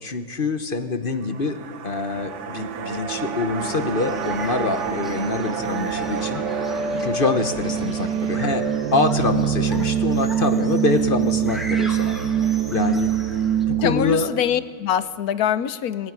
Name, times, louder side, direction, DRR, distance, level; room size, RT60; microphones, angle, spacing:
voice 1, 0.0-1.6 1.8-6.7 7.0-12.2 12.4-13.1 13.7-14.3, left 3 dB, 35° left, 8 dB, 1.2 m, -25 dB
sound 1, 1.1-11.5 11.8-11.9, right 7 dB, 55° right, 1.1 m, -33 dB
sound 2, 2.1-14.0, right 8 dB, 90° right, 1.8 m, -25 dB
sound 3, 3.7-13.6, equal, ahead, 2.0 m, -40 dB
voice 2, 13.8-16.1, left 9 dB, 70° left, 14 dB, 1.2 m, -23 dB
20.5 x 14.5 x 9.6 m, 2.1 s
omnidirectional pair, 1.8 m